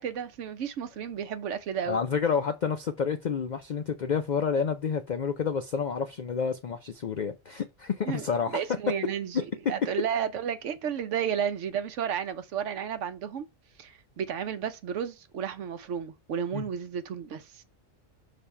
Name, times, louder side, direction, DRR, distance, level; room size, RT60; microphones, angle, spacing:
voice 1, 0.0-2.0 8.1-13.5 13.8-17.6, right 8 dB, 70° right, 1.0 m, -32 dB
voice 2, 1.9-8.6 16.5-16.7, left 6 dB, 65° left, 0.4 m, -29 dB
6.6 x 2.8 x 5.5 m
omnidirectional pair, 1.4 m